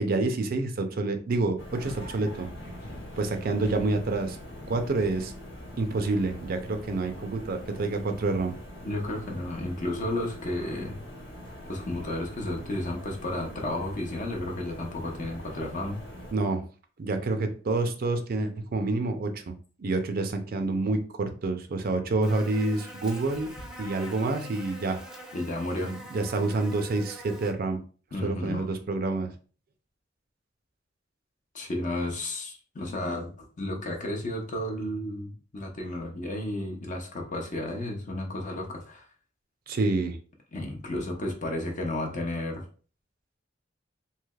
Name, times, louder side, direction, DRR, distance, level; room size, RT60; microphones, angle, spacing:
voice 1, 0.0-2.5 3.2-4.4 4.7-5.3 5.8-8.5 16.3-16.6 17.0-19.5 19.8-23.5 23.8-25.0 25.8-27.8 28.2-29.3 39.7-40.2, right 3 dB, 55° right, 7 dB, 0.4 m, -28 dB
sound 1, 1.6-16.3, equal, 65° left, 1.0 m, -43 dB
voice 2, 8.8-11.0 11.7-16.0 25.3-25.9 28.1-28.7 31.5-39.0 40.5-42.6, left 1 dB, 45° left, 2 dB, 0.7 m, -32 dB
Buzz, 22.2-27.5, right 1 dB, 5° right, 0.6 m, -44 dB
3.2 x 2.8 x 2.3 m, 0.38 s
head